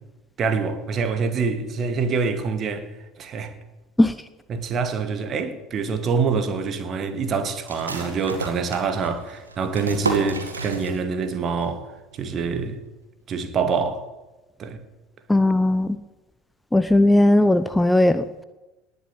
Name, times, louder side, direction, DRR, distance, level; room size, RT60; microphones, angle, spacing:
voice 1, 0.4-2.9 3.2-3.5 4.5-12.8 13.3-14.1 14.6-14.8, right 5 dB, 40° right, 2.0 m, -25 dB
sound 1, 7.7-11.3 11.6-11.7 12.1-12.6, right 3 dB, 85° right, 2.1 m, -31 dB
voice 2, 15.3-15.9 16.7-18.4, left 1 dB, 5° left, 0.7 m, -17 dB
19.0 x 7.2 x 9.0 m
figure-of-eight pair, 70°, 0 cm